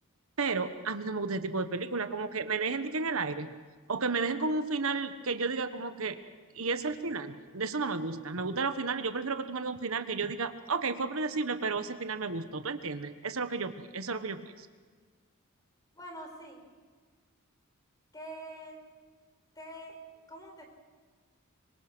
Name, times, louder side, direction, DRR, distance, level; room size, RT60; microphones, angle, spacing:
voice 1, 0.4-3.5 3.9-6.2 6.5-14.7, right 4 dB, 75° right, 10 dB, 1.3 m, -32 dB
voice 2, 15.9-16.6 18.1-18.8 19.6-20.0 20.3-20.7, right 1 dB, 20° left, 3 dB, 4.8 m, -45 dB
25.5 x 24.5 x 6.2 m, 1.5 s
head